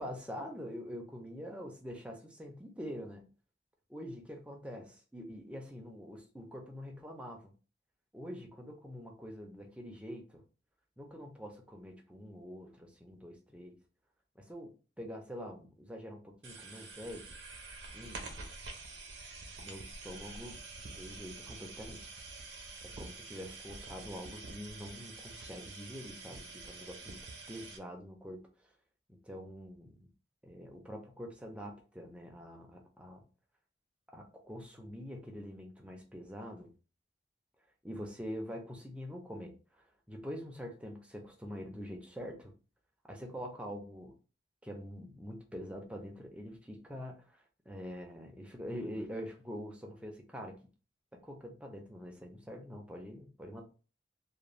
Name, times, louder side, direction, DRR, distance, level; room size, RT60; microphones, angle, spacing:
voice 1, 0.0-3.2 3.9-7.5 8.1-10.4 11.0-13.8 14.4-17.3 17.9-18.2 19.6-20.6 20.9-22.0 22.8-27.2 27.5-28.4 29.1-30.1 30.4-33.2 34.1-36.7 37.8-42.5 43.1-44.1 44.6-50.6 51.1-53.6, equal, 5° right, 2 dB, 0.4 m, -45 dB
sound 1, 16.4-27.8, right 3 dB, 75° right, 0.6 m, -47 dB
2.5 x 2.0 x 3.0 m, 0.35 s
head